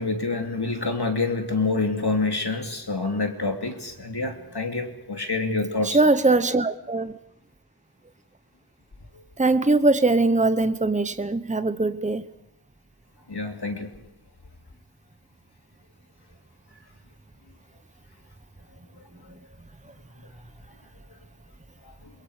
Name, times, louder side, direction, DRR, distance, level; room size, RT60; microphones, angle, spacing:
voice 1, 0.0-6.0 9.1-9.2 13.3-13.9 21.8-22.1, left 3 dB, 65° left, 4 dB, 2.9 m, -27 dB
voice 2, 5.8-7.1 9.4-12.2, right 2 dB, 15° right, 12 dB, 0.9 m, -21 dB
28.5 x 22.0 x 5.0 m, 0.83 s
wide cardioid pair, 50°, 41 cm